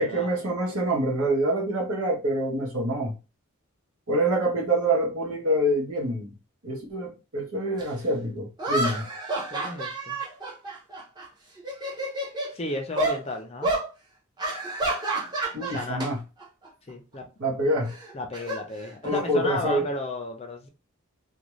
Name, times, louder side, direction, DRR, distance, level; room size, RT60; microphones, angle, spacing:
voice 1, 0.0-3.2 4.1-6.3 6.6-9.1 15.5-16.2 17.4-17.9 19.0-19.9, right 1 dB, 85° right, 1.0 m, -26 dB
sound 1, 7.8-7.9 8.6-11.2 11.6-12.5 13.0-13.2 13.6-13.9 14.4-16.1 16.4-16.7 17.9-19.3, right 2 dB, 20° right, 0.7 m, -29 dB
voice 2, 9.5-10.2 12.5-13.7 15.7-16.1 16.9-17.3 18.1-20.7, left 2 dB, 30° left, 0.5 m, -33 dB
2.5 x 2.2 x 3.0 m
head